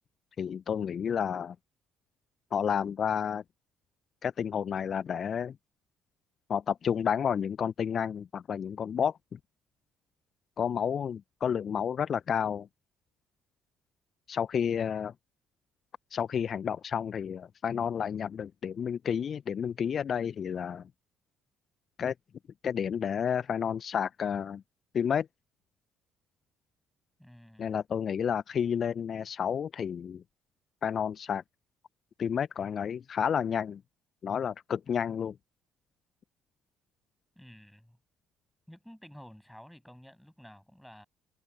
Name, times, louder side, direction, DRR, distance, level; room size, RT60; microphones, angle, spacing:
voice 1, 0.4-1.5 2.5-3.4 4.2-5.5 6.5-9.4 10.6-12.7 14.3-15.1 16.1-20.9 22.0-22.1 22.6-24.6 24.9-25.3 27.6-30.2 30.8-31.4 32.2-33.8 34.2-35.4, left 7 dB, 50° left, 0.8 m, -30 dB
voice 2, 27.2-27.8 37.4-38.0 38.7-41.1, equal, 5° left, 7.2 m, -52 dB
hypercardioid pair, 50°, 0 cm